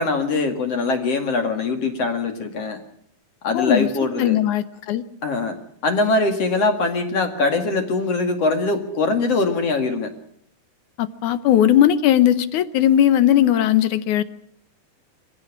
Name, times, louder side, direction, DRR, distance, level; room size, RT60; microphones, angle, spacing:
voice 1, 0.0-2.8 3.4-4.4 5.2-5.6 5.8-10.1, left 3 dB, 50° left, 5 dB, 3.0 m, -22 dB
voice 2, 3.5-3.9 4.2-5.0 11.0-14.2, left 11 dB, 70° left, 13 dB, 2.2 m, -18 dB
23.0 x 17.0 x 7.3 m, 0.68 s
omnidirectional pair, 3.9 m